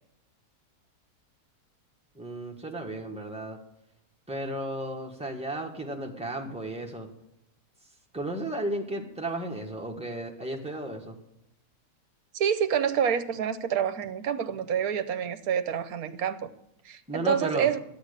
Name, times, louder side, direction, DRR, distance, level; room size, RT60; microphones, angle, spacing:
voice 1, 2.1-3.6 4.3-7.1 8.1-11.2 17.1-17.7, right 1 dB, 5° right, 0 dB, 1.6 m, -34 dB
voice 2, 12.3-16.5 16.8-17.8, right 8 dB, 70° right, 11 dB, 1.3 m, -27 dB
12.0 x 8.9 x 6.6 m, 0.81 s
omnidirectional pair, 1.7 m